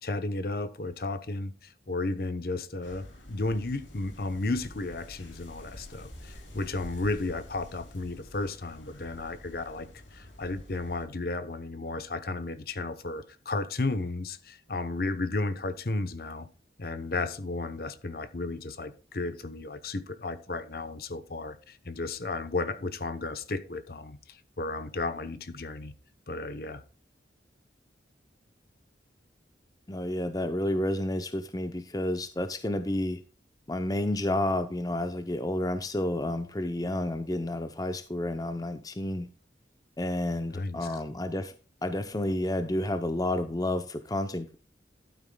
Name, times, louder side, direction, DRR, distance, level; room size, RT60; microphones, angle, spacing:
voice 1, 0.0-16.5 16.8-25.9 26.3-26.8 40.5-41.0, left 2 dB, 50° left, 0.8 m, -33 dB
sound 1, 2.8-11.1, left 1 dB, 90° left, 3.1 m, -48 dB
voice 2, 29.9-33.2 33.7-39.3 40.0-41.5 41.8-44.5, left 1 dB, 20° left, 0.6 m, -30 dB
11.5 x 9.0 x 2.2 m
head